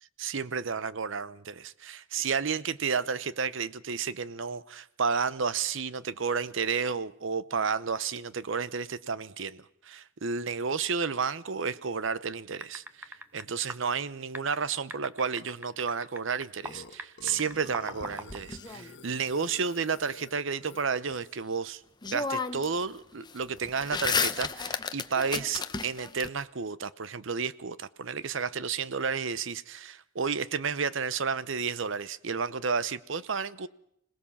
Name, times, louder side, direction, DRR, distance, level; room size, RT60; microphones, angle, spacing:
voice 1, 0.2-21.8 22.1-33.7, right 5 dB, 65° right, 0.8 m, -31 dB
sound 1, 12.6-13.4 13.7-13.8 14.3-16.7 17.0-18.4, right 1 dB, 10° right, 0.9 m, -41 dB
Burping eructation, 16.6-21.4, left 3 dB, 60° left, 1.4 m, -49 dB
sound 2, 18.0-19.3 21.5-21.6 22.0-22.8 23.1-26.3, left 5 dB, 20° left, 0.8 m, -32 dB
26.5 x 17.5 x 7.2 m
head